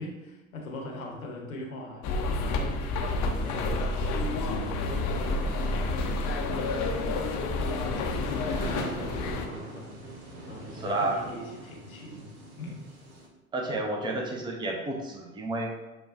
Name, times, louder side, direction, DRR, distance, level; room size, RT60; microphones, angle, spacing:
voice 1, 0.0-12.9, left 1 dB, 80° left, 0 dB, 1.0 m, -41 dB
sound 1, 2.0-9.5, left 2 dB, 40° left, 0.6 m, -29 dB
sound 2, 3.2-13.3, right 2 dB, 85° right, 0.9 m, -45 dB
voice 2, 10.8-11.2 13.5-15.8, right 2 dB, 10° right, 1 dB, 0.6 m, -31 dB
6.7 x 2.3 x 2.5 m, 1.1 s
figure-of-eight pair, 75°, 41 cm